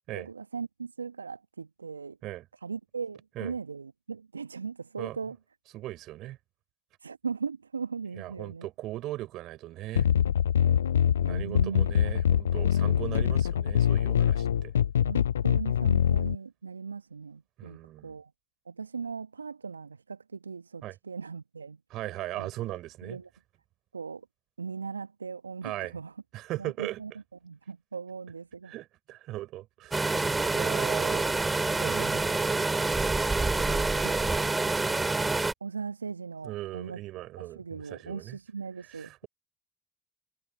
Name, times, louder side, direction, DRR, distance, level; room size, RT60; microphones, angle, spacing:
voice 1, 0.1-2.2 2.6-5.4 7.0-8.7 11.2-11.9 15.0-18.3 18.7-21.8 22.4-22.5 23.0-23.3 23.9-24.3 24.6-26.1 26.6-27.1 27.4-28.7 34.0-34.2 35.6-37.0 37.4-39.2, right 5 dB, 85° right, 1.3 m, -38 dB
voice 2, 5.7-6.4 8.2-10.1 11.2-14.7 17.6-18.2 20.8-21.0 21.9-23.2 25.6-25.9 26.3-27.0 28.7-31.3 31.6-33.1 33.6-34.6 36.4-38.4 38.9-39.3, right 15 dB, 60° right, 5.6 m, -39 dB
sound 1, 10.0-16.4, left 9 dB, 80° left, 0.5 m, -24 dB
sound 2, 29.9-35.5, right 3 dB, 20° right, 3.2 m, -27 dB
figure-of-eight pair, 55°, 0 cm